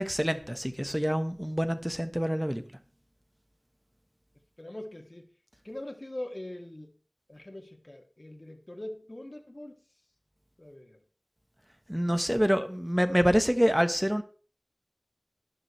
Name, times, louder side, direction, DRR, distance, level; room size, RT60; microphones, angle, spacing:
voice 1, 0.0-2.6 11.9-14.2, equal, 10° right, 1.4 m, -26 dB
voice 2, 4.6-5.3 5.6-6.9 7.3-9.8 10.6-11.0, left 1 dB, 45° left, 2.5 m, -42 dB
12.5 x 11.0 x 3.4 m
wide cardioid pair, 40°, 0 cm